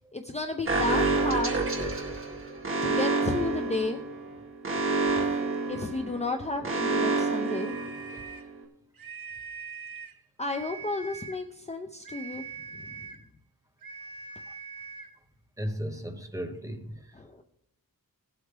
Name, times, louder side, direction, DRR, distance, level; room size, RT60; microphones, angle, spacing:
voice 1, 0.1-1.6 2.8-4.0 5.7-7.7 10.4-12.5 17.1-17.4, left 3 dB, 20° left, 0.6 m, -32 dB
Alarm, 0.7-8.4, right 3 dB, 35° right, 1.9 m, -28 dB
sound 1, 7.4-8.5 8.9-10.2 10.5-11.4 12.0-13.3 13.8-15.2, right 5 dB, 75° right, 1.2 m, -42 dB
voice 2, 15.6-17.1, equal, 10° right, 1.0 m, -36 dB
18.0 x 8.0 x 3.4 m
wide cardioid pair, 170°, 35 cm